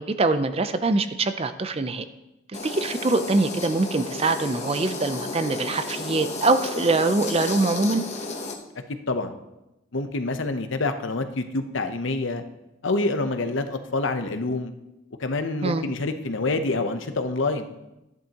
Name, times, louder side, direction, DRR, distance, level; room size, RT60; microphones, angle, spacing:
voice 1, 0.0-2.1 2.5-8.0 15.6-15.8, right 3 dB, 30° right, 10 dB, 0.5 m, -23 dB
sound 1, 2.5-8.5, left 3 dB, 35° left, 1.0 m, -33 dB
voice 2, 9.9-12.4 12.8-14.7 15.2-17.7, left 2 dB, 70° left, 8 dB, 0.8 m, -27 dB
14.0 x 10.5 x 2.9 m, 0.95 s
head